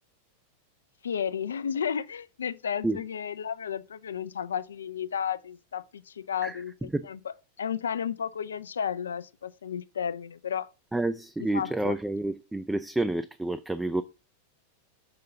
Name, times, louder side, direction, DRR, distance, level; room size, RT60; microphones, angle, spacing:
voice 1, 1.0-6.7 7.0-10.7 11.4-12.0, left 8 dB, 70° left, 0.4 m, -33 dB
voice 2, 10.9-14.0, right 2 dB, 5° right, 0.4 m, -29 dB
6.7 x 3.7 x 5.5 m
figure-of-eight pair, 90°, 0 cm